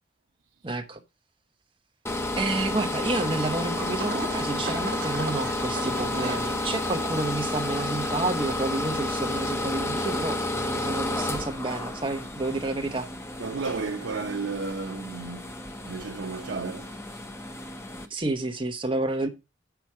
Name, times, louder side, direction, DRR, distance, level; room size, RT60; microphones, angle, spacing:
voice 1, 0.6-1.0 2.3-13.1 18.1-19.3, right 2 dB, 25° right, 1.0 m, -30 dB
sound 1, 2.1-18.1, left 2 dB, 15° left, 0.8 m, -31 dB
sound 2, 3.7-9.5, right 4 dB, 50° right, 1.3 m, -39 dB
voice 2, 13.4-15.5 15.8-17.3, right 4 dB, 90° right, 0.6 m, -33 dB
8.0 x 6.0 x 4.7 m
head